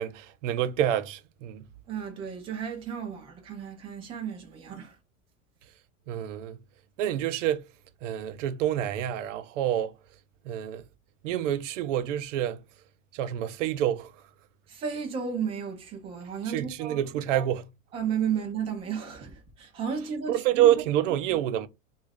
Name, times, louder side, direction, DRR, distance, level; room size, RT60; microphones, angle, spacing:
voice 1, 0.0-1.7 6.1-6.6 7.0-7.7 8.0-9.9 10.5-10.8 11.2-12.6 13.1-14.1 16.5-17.7 20.3-21.7, right 11 dB, 60° right, 0.6 m, -27 dB
voice 2, 1.9-5.0 14.7-17.0 17.9-20.4 21.3-21.4, right 7 dB, 15° right, 0.4 m, -33 dB
3.1 x 2.4 x 3.4 m
supercardioid pair, 160°, 41 cm